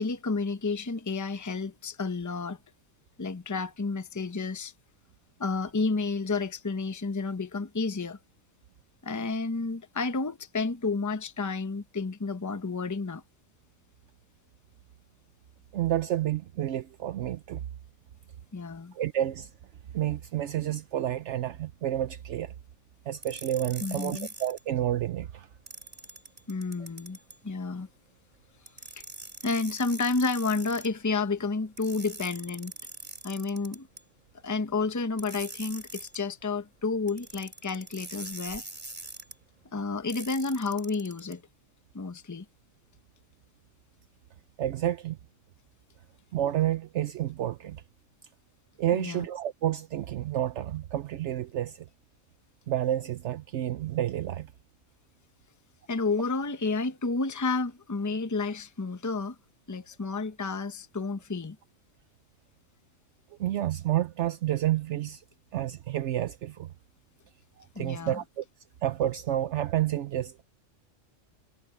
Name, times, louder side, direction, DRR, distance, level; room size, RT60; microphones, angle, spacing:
voice 1, 0.0-2.6 3.2-4.7 5.4-8.2 9.0-13.2 18.5-18.9 23.8-24.3 26.5-27.2 27.4-27.9 29.0-29.1 29.4-32.7 33.2-33.9 34.4-38.6 39.7-41.4 41.9-42.4 48.9-49.3 55.9-59.3 59.7-61.6 67.7-68.2, left 3 dB, 15° left, 0.8 m, -31 dB
voice 2, 15.7-17.6 18.9-19.5 19.9-22.5 23.1-25.5 44.6-45.2 46.3-47.8 48.8-51.9 52.7-54.5 63.4-65.2 65.5-66.7 67.6-68.4 68.8-70.4, right 12 dB, 70° right, 0.9 m, -30 dB
sound 1, 23.2-24.6 25.7-27.4 28.7-30.9 31.8-34.0 35.2-36.2 37.1-39.3 40.1-41.3, right 2 dB, 35° right, 3.3 m, -43 dB
omnidirectional pair, 1.3 m